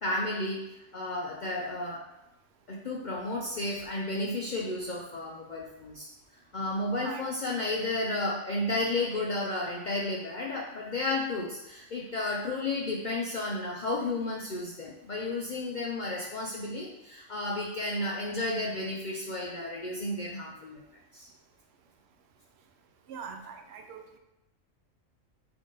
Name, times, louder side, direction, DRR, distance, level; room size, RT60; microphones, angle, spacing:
voice 1, 0.0-2.1 2.7-6.1 6.5-20.8 21.1-21.3, left 2 dB, 70° left, -3 dB, 0.4 m, -32 dB
voice 2, 6.9-7.3 8.9-9.3 23.1-24.2, right 6 dB, 65° right, 5 dB, 0.7 m, -43 dB
3.8 x 3.5 x 3.8 m, 0.91 s
omnidirectional pair, 1.4 m